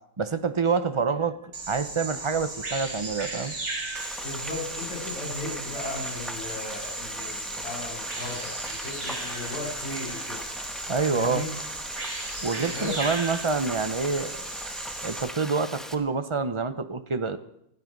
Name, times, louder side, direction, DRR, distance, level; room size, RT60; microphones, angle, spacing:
voice 1, 0.2-1.4 1.7-3.5 10.9-11.4 12.4-14.5 15.0-17.4, right 4 dB, 40° right, 10 dB, 0.4 m, -27 dB
Bird vocalization bird call bird song, 1.5-15.2, right 2 dB, 85° right, 3.8 m, -36 dB
Frying (food), 3.9-15.9, equal, ahead, 1.0 m, -39 dB
voice 2, 4.2-10.4 11.1-11.5 12.7-13.0, left 2 dB, 65° left, -5 dB, 8.5 m, -36 dB
20.0 x 14.0 x 5.3 m, 0.77 s
omnidirectional pair, 1.8 m